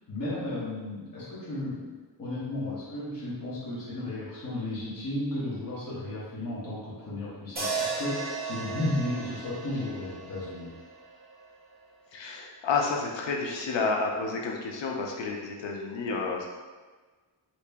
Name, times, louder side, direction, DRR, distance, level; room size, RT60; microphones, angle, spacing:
voice 1, 0.1-1.9 2.2-10.7, left 1 dB, 50° left, -9 dB, 1.2 m, -34 dB
sound 1, 7.6-11.8, right 4 dB, 20° right, 0.8 m, -36 dB
voice 2, 12.1-16.4, left 4 dB, 80° left, 0 dB, 0.6 m, -30 dB
3.0 x 2.9 x 3.4 m, 1.4 s
wide cardioid pair, 175°, 43 cm